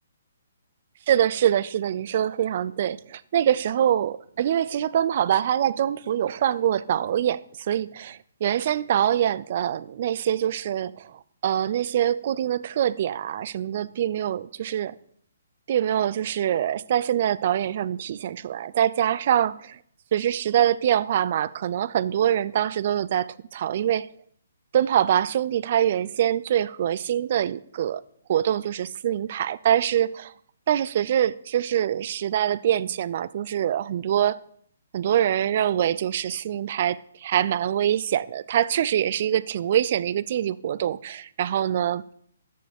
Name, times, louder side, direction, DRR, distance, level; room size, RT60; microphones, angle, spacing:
voice 1, 1.1-15.0 15.7-19.8 20.1-24.1 24.7-28.0 28.3-30.3 30.7-34.4 34.9-42.0, right 10 dB, 40° right, 0.4 m, -24 dB
14.0 x 9.4 x 3.5 m
hypercardioid pair, 165°, 0 cm